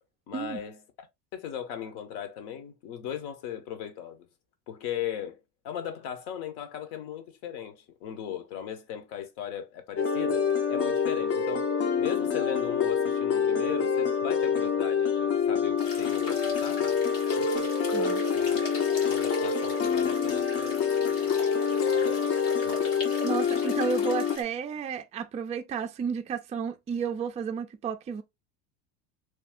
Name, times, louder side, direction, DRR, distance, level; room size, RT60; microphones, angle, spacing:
voice 1, 0.3-0.8 1.3-4.3 4.7-11.7 12.0-17.0 17.4-18.6 19.0-21.3 21.7-22.4 22.6-22.8, left 9 dB, 60° left, 1.1 m, -38 dB
sound 1, 10.0-24.4, left 6 dB, 30° left, 0.7 m, -26 dB
sound 2, 15.8-24.4, left 2 dB, 85° left, 1.7 m, -41 dB
voice 2, 17.9-18.2 23.2-28.2, right 6 dB, 15° right, 0.4 m, -32 dB
3.1 x 2.4 x 3.5 m
hypercardioid pair, 80°, 45 cm